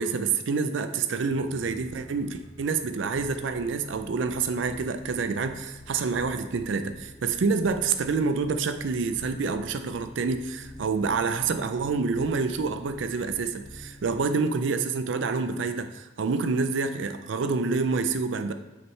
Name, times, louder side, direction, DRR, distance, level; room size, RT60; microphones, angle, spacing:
voice 1, 0.0-18.5, right 4 dB, 75° right, 9 dB, 0.4 m, -27 dB
sound 1, 1.2-14.3, left 1 dB, 85° left, 2.0 m, -48 dB
7.5 x 5.7 x 3.2 m, 1.1 s
head